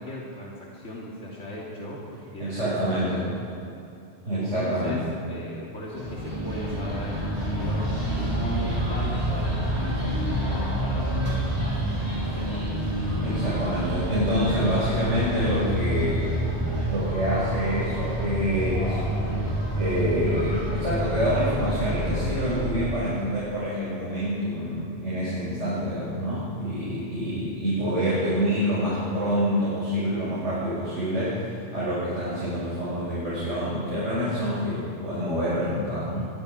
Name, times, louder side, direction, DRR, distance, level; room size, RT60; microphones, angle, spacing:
voice 1, 0.0-3.4 4.3-5.0 5.3-13.0, left 1 dB, 80° left, -5 dB, 3.4 m, -38 dB
voice 2, 2.4-3.3 4.2-5.0 13.2-16.4 16.8-19.0 19.7-36.3, equal, 85° right, -10 dB, 7.2 m, -27 dB
sound 1, 5.9-22.7, right 1 dB, 25° right, 6.3 m, -28 dB
24.5 x 22.5 x 5.2 m, 2.7 s
omnidirectional pair, 1.2 m